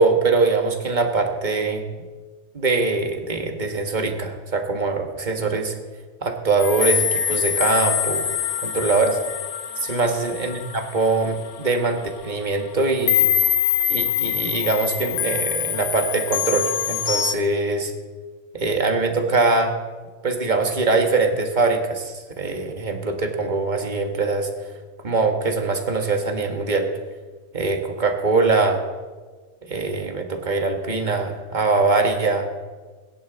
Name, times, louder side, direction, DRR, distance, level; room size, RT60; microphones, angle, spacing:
voice 1, 0.0-1.8 2.5-5.7 6.2-8.3 8.6-9.2 9.8-13.3 13.9-17.9 18.5-19.7 20.2-24.5 25.0-26.9 27.5-28.8 29.6-32.5, right 3 dB, 35° right, 5 dB, 1.5 m, -22 dB
sound 1, 6.6-11.7 12.2-12.3 13.1-17.3, left 9 dB, 65° left, 1.0 m, -24 dB
21.0 x 10.5 x 3.9 m, 1.4 s
omnidirectional pair, 1.4 m